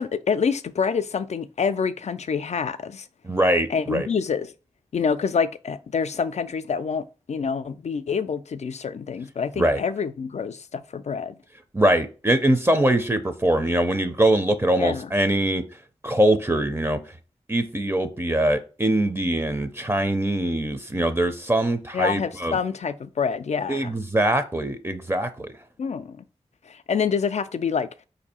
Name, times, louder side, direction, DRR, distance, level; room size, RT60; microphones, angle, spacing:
voice 1, 0.0-3.1 3.7-4.5 4.9-11.3 14.8-15.1 21.9-24.0 25.8-26.2 26.7-27.9, left 6 dB, 70° left, 0.4 m, -27 dB
voice 2, 3.2-4.1 9.6-9.8 11.7-15.6 16.0-17.0 17.5-22.6 23.7-25.5, right 1 dB, 20° right, 0.5 m, -22 dB
4.7 x 2.6 x 4.2 m
wide cardioid pair, 65°, 12 cm